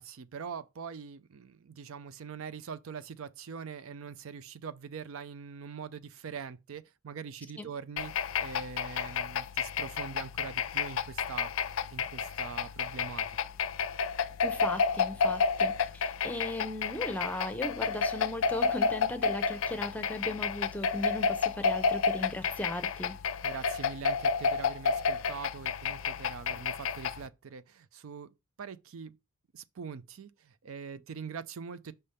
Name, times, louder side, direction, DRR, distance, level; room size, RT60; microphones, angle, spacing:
voice 1, 0.0-13.3 23.4-28.3 28.6-29.2 29.5-31.9, right 6 dB, 70° right, 0.4 m, -43 dB
sound 1, 8.0-27.3, left 5 dB, 65° left, 0.5 m, -31 dB
voice 2, 14.4-23.2, left 1 dB, 5° left, 0.7 m, -37 dB
5.5 x 3.4 x 5.5 m
head